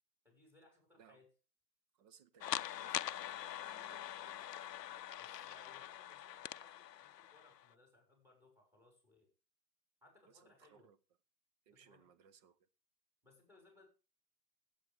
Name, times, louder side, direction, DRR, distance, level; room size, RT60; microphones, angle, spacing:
voice 1, 0.2-1.3 5.2-9.3 10.0-10.9 11.7-12.1 13.2-13.9, left 2 dB, 5° right, 5.1 m, -67 dB
voice 2, 1.9-4.7 10.2-11.0 11.7-12.7, right 8 dB, 25° right, 0.8 m, -65 dB
sound 1, 2.4-7.7, left 12 dB, 75° left, 0.6 m, -44 dB
16.0 x 8.7 x 3.5 m
hypercardioid pair, 125°, 49 cm